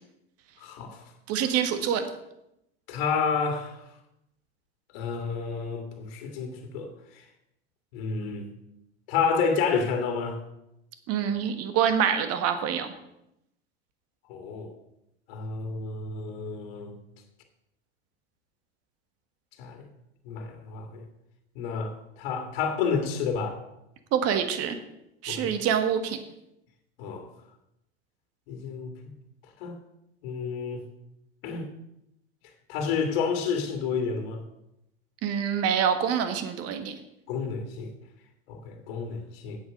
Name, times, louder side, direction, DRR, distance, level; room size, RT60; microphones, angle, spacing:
voice 1, 0.6-1.0 2.9-3.8 4.9-6.9 7.2-7.3 7.9-8.5 9.1-10.4 14.3-14.7 15.3-17.0 19.6-19.9 20.3-21.0 21.6-21.9 22.2-23.6 25.3-25.5 27.0-27.3 28.5-28.9 29.6-29.8 30.2-30.8 31.4-31.7 32.7-34.4 37.3-37.9 38.5-39.6, left 5 dB, 65° left, 5 dB, 1.9 m, -30 dB
voice 2, 1.3-2.1 11.1-12.9 24.1-24.8 25.2-26.2 35.2-37.0, right 8 dB, 50° right, 8 dB, 1.6 m, -26 dB
8.1 x 7.6 x 6.5 m, 0.83 s
hypercardioid pair, 95°, 32 cm